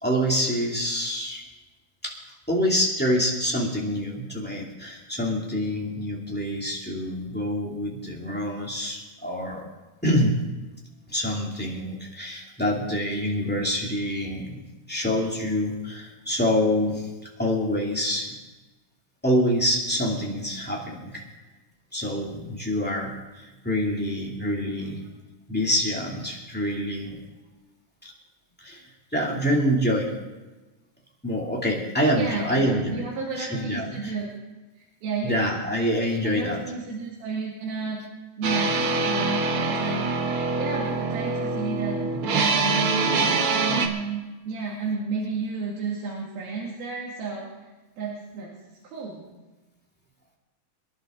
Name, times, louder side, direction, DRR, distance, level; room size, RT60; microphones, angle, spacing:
voice 1, 0.0-1.4 2.0-2.2 2.5-9.7 10.0-10.4 11.1-14.6 14.9-17.1 17.4-18.3 19.2-21.2 21.9-25.0 25.5-27.2 28.6-28.8 29.1-30.2 31.2-33.0 33.4-34.1 35.2-36.6, equal, 5° left, -4 dB, 1.9 m, -26 dB
voice 2, 32.1-34.3 34.8-35.5 36.2-38.0 38.4-40.1 40.6-47.5 48.0-48.5 48.8-49.2, right 4 dB, 85° right, -4 dB, 4.0 m, -32 dB
sound 1, 38.4-43.9, right 4 dB, 65° right, 1.3 m, -25 dB
24.5 x 11.5 x 3.8 m, 1.2 s
omnidirectional pair, 4.2 m